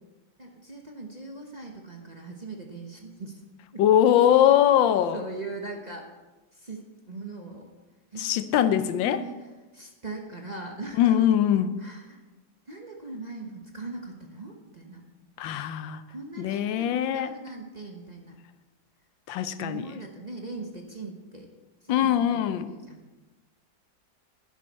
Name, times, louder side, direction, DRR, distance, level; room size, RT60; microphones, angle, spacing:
voice 1, 0.4-3.4 3.7-3.8 4.8-6.1 6.5-7.7 8.1-8.6 8.9-9.5 9.7-11.2 11.8-12.2 12.7-15.0 16.1-18.4 19.6-21.5 21.8-23.0, right 3 dB, 30° right, 1 dB, 0.8 m, -40 dB
voice 2, 3.8-5.2 8.2-9.2 11.0-11.7 15.4-16.0 16.4-17.3 19.3-19.9 21.9-22.7, left 10 dB, 90° left, 12 dB, 1.4 m, -22 dB
11.0 x 11.0 x 4.1 m, 1.1 s
omnidirectional pair, 2.0 m